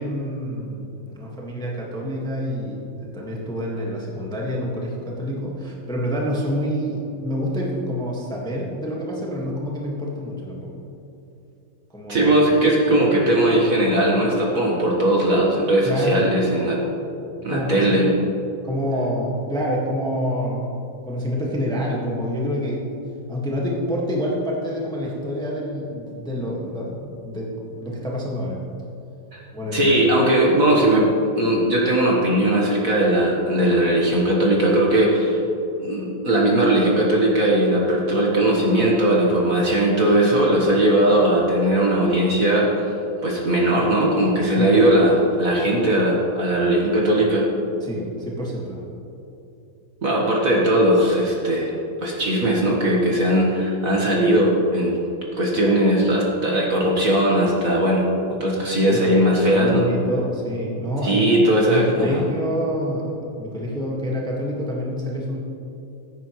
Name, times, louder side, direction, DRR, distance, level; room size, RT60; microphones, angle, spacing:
voice 1, 0.0-10.8 11.9-12.3 15.8-16.3 17.5-18.1 18.6-20.6 21.0-22.9 23.3-28.6 29.5-29.9 44.5-44.8 47.8-48.9 55.7-55.8 58.8-61.3 61.7-65.4, equal, ahead, -4 dB, 1.4 m, -27 dB
voice 2, 12.1-16.8 17.4-18.2 29.3-29.4 29.7-35.4 35.8-42.9 43.2-47.5 50.0-51.7 52.0-55.0 55.4-58.1 58.4-59.8 61.0-62.2, right 1 dB, 45° right, -3 dB, 1.7 m, -19 dB
16.0 x 9.4 x 3.2 m, 2.9 s
omnidirectional pair, 2.3 m